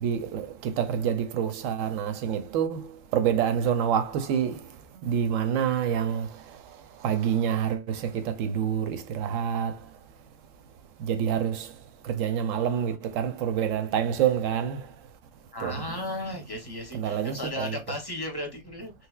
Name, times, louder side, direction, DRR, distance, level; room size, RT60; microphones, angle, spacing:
voice 1, 0.0-4.6 5.0-6.3 7.0-9.7 11.0-11.7 12.0-14.8 15.6-16.0 16.9-17.8, right 8 dB, 85° right, 1.0 m, -27 dB
voice 2, 15.5-18.9, left 1 dB, 25° left, 0.6 m, -35 dB
3.2 x 3.0 x 2.3 m
omnidirectional pair, 1.3 m